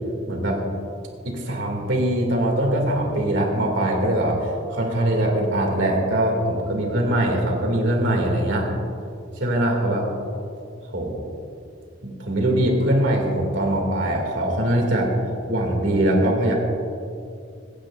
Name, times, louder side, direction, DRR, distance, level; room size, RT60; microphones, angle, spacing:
voice 1, 0.3-0.6 1.2-8.7 9.4-10.1 10.8-11.2 12.0-15.1 15.5-16.5, right 1 dB, 80° right, 0 dB, 2.5 m, -22 dB
25.5 x 9.0 x 2.5 m, 2.4 s
head